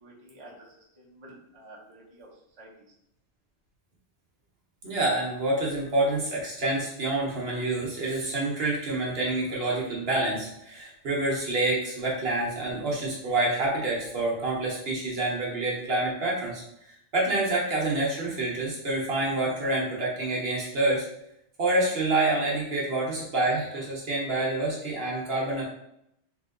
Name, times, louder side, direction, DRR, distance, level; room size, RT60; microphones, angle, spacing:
voice 1, 0.0-2.3 2.6-2.9, right 1 dB, 30° right, -4 dB, 0.8 m, -50 dB
voice 2, 4.8-16.6 17.1-21.0 21.6-25.6, right 2 dB, 60° right, -3 dB, 1.1 m, -27 dB
3.2 x 2.8 x 3.7 m, 0.78 s
omnidirectional pair, 1.2 m